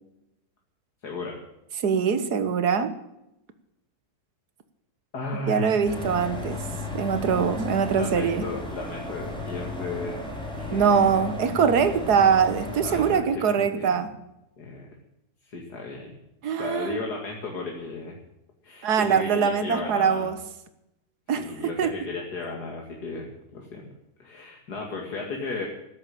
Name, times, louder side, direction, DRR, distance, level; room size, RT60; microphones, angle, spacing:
voice 1, 1.0-1.4 5.1-6.2 8.0-10.2 10.6-11.2 12.8-14.0 14.6-14.9 15.4-16.1 16.6-18.2 18.6-20.3 21.4-23.9 24.2-25.7, left 3 dB, 90° left, 0 dB, 2.7 m, -35 dB
voice 2, 1.8-2.9 5.5-6.6 6.9-8.4 10.7-14.1 16.4-17.0 18.8-20.4 21.3-21.9, right 6 dB, 80° right, 11 dB, 1.8 m, -23 dB
sound 1, 5.8-13.1, left 2 dB, 5° left, 4.7 m, -35 dB
13.5 x 10.5 x 8.8 m, 0.86 s
omnidirectional pair, 1.7 m